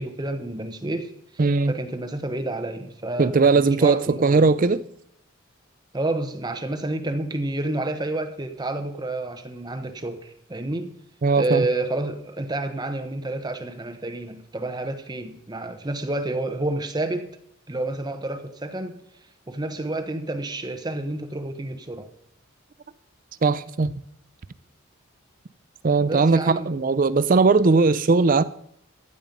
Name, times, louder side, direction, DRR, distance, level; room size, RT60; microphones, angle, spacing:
voice 1, 0.0-4.5 5.9-10.9 11.4-17.3 17.7-19.0 19.5-22.1 26.0-26.8, right 2 dB, 20° right, 1.0 m, -29 dB
voice 2, 1.4-1.7 3.2-4.8 11.2-11.6 23.4-23.9 25.8-28.4, right 4 dB, 40° right, 0.5 m, -19 dB
15.0 x 8.7 x 5.3 m
head